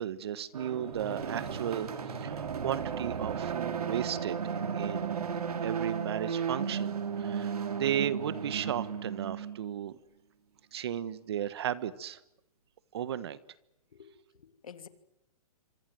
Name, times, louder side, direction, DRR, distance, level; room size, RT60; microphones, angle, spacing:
voice 1, 0.0-4.4 4.7-5.3 5.6-10.0 10.7-12.2 12.9-13.4, right 10 dB, 45° right, 1.4 m, -35 dB
sound 1, 0.5-9.7, right 6 dB, 90° right, 3.3 m, -34 dB
voice 2, 13.9-14.9, left 7 dB, 70° left, 3.0 m, -50 dB
26.5 x 26.0 x 7.8 m
hypercardioid pair, 170°, 19 cm